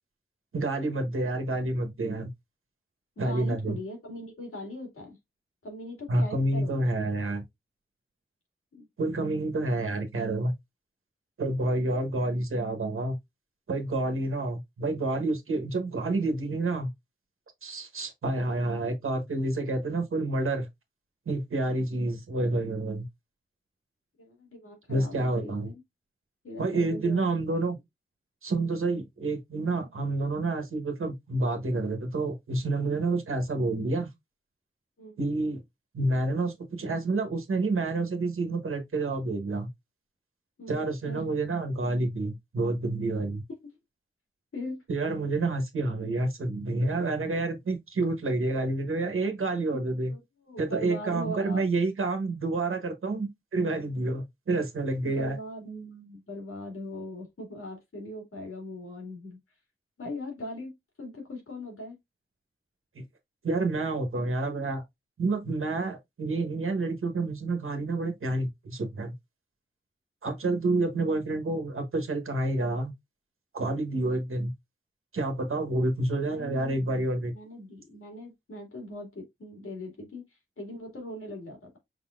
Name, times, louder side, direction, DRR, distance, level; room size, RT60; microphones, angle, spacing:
voice 1, 0.5-2.3 3.2-3.8 6.1-7.4 9.0-10.5 11.4-13.2 13.7-16.9 17.6-20.7 21.3-23.0 24.9-25.7 26.6-27.8 28.4-34.1 35.2-35.6 35.9-39.7 40.7-43.4 44.9-50.1 50.6-55.4 62.9-63.0 63.4-64.8 65.2-69.1 70.2-72.9 73.5-74.5 75.1-77.3, right 2 dB, 80° right, 1.2 m, -29 dB
voice 2, 3.2-5.2 5.6-6.8 8.7-8.9 24.2-25.8 26.4-27.3 35.0-35.2 40.6-41.2 44.5-44.8 49.7-49.8 50.1-51.7 55.0-59.4 60.0-62.0 76.3-81.8, left 1 dB, 85° left, 2.4 m, -40 dB
5.5 x 3.9 x 2.5 m
wide cardioid pair, 100°, 21 cm